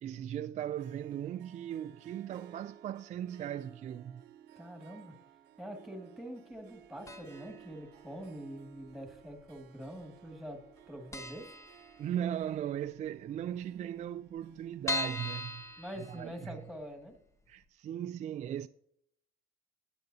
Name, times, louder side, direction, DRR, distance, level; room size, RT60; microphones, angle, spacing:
voice 1, 0.0-4.2 12.0-16.6 17.5-18.7, right 10 dB, 45° right, 0.4 m, -38 dB
Harp, 0.7-17.2, right 11 dB, 80° right, 0.9 m, -58 dB
voice 2, 4.6-5.1 5.6-10.6 10.9-11.5 15.8-17.1, equal, ahead, 2.1 m, -45 dB
sound 1, 7.1-7.6 7.8-7.9 8.9-9.6 9.9-10.0 10.3-10.4 10.8-10.9 11.1-12.4 12.8-12.9 13.2-13.3 13.5-13.6 14.1-16.7 17.1-17.2 17.6-17.7, left 3 dB, 15° left, 0.8 m, -39 dB
19.0 x 7.8 x 2.7 m
cardioid pair, 110°, 17 cm